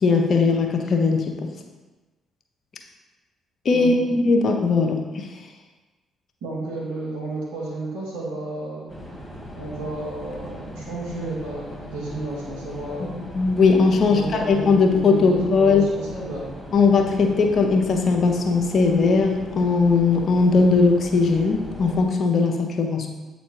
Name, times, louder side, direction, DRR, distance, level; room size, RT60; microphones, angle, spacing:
voice 1, 0.0-1.5 3.6-5.3 13.0-14.2 14.5-15.9 16.7-23.1, left 4 dB, 55° left, 3 dB, 0.8 m, -19 dB
voice 2, 6.4-8.9 9.6-13.2 14.1-16.5, right 2 dB, 80° right, -5 dB, 1.8 m, -32 dB
sound 1, 8.9-22.0, equal, ahead, 1.5 m, -39 dB
8.2 x 4.1 x 3.2 m, 1.2 s
hypercardioid pair, 45°, 0 cm